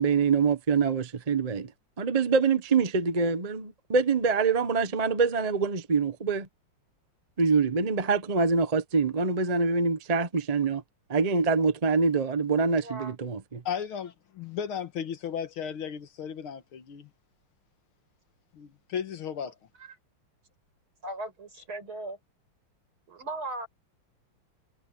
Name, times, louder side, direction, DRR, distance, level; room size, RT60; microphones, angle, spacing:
voice 1, 0.0-1.7 2.0-6.5 7.4-10.8 11.1-13.6, right 5 dB, 30° right, 0.7 m, -25 dB
voice 2, 12.8-13.1 19.8-20.0 21.0-22.2 23.1-23.7, right 2 dB, 70° right, 8.8 m, -37 dB
voice 3, 13.7-17.1 18.5-19.6, left 8 dB, 75° left, 2.2 m, -35 dB
omnidirectional pair, 2.3 m